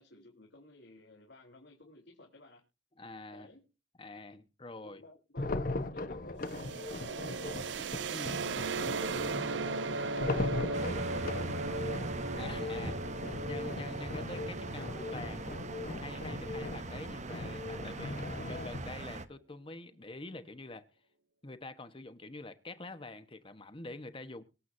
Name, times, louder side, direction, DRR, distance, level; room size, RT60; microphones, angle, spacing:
voice 1, 0.0-2.6 3.3-3.6 4.8-7.7 8.2-8.8 9.1-12.0 12.7-13.0 14.9-15.3, left 2 dB, 80° left, 3.7 m, -55 dB
voice 2, 3.0-3.5 4.0-5.0 8.1-8.3 9.2-9.3 12.4-12.9 13.4-15.4 16.0-20.9 21.4-24.4, left 2 dB, 30° left, 1.2 m, -46 dB
sound 1, 5.4-18.8, left 2 dB, 50° left, 1.2 m, -39 dB
sound 2, 6.4-18.1, right 4 dB, 85° right, 0.6 m, -38 dB
sound 3, 10.7-19.3, right 2 dB, 40° right, 1.0 m, -41 dB
24.5 x 8.3 x 2.7 m
head